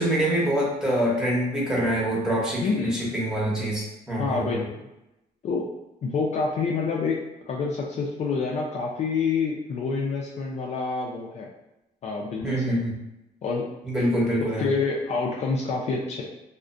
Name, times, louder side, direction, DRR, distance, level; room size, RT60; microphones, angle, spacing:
voice 1, 0.0-4.6 12.4-12.9 13.8-14.7, right 1 dB, 5° right, -6 dB, 0.8 m, -25 dB
voice 2, 2.6-3.0 4.2-4.9 5.4-5.7 6.0-11.5 12.0-12.8 13.4-13.7 14.4-16.2, left 4 dB, 40° left, -2 dB, 0.4 m, -27 dB
2.3 x 2.1 x 2.5 m, 0.93 s
cardioid pair, 110°, 17 cm